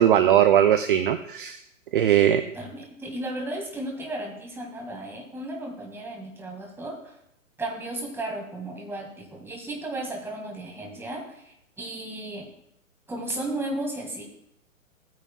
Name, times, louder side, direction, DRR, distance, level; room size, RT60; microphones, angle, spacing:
voice 1, 0.0-1.6 1.9-2.4, right 10 dB, 40° right, 10 dB, 0.5 m, -19 dB
voice 2, 2.5-7.2 7.6-12.5 13.1-14.2, right 1 dB, 5° right, 0 dB, 1.9 m, -34 dB
15.0 x 9.2 x 2.3 m, 0.76 s
figure-of-eight pair, 120°, 41 cm